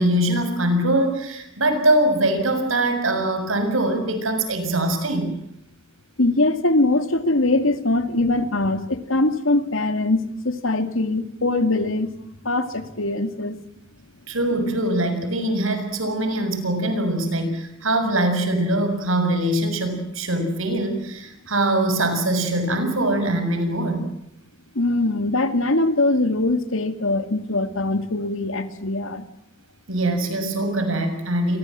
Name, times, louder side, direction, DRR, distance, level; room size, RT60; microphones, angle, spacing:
voice 1, 0.0-5.3 14.3-24.1 29.9-31.6, right 1 dB, 80° right, 8 dB, 6.6 m, -22 dB
voice 2, 6.2-12.1 12.4-13.6 24.7-29.3, left 2 dB, 75° left, 9 dB, 2.4 m, -22 dB
29.0 x 23.0 x 7.7 m, 0.79 s
head